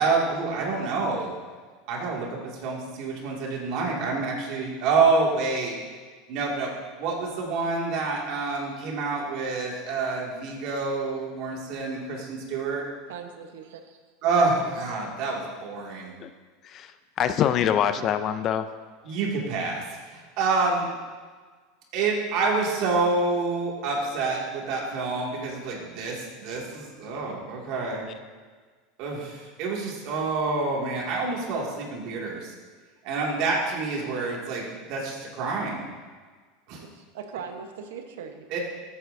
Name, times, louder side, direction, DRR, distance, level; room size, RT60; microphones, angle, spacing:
voice 1, 0.0-1.3 1.9-2.3 2.6-5.7 6.3-6.7 7.0-12.8 14.2-16.1 19.0-19.8 20.4-20.9 21.9-28.0 29.0-32.5 33.0-35.9 36.7-36.8 38.5-38.6, right 3 dB, 60° right, -2 dB, 2.4 m, -27 dB
voice 2, 13.1-13.8 37.1-38.4, right 6 dB, 85° right, 6 dB, 1.1 m, -39 dB
voice 3, 16.6-18.7, left 9 dB, 40° left, 10 dB, 0.5 m, -25 dB
13.5 x 8.9 x 2.7 m, 1.5 s
supercardioid pair, 125°, 0 cm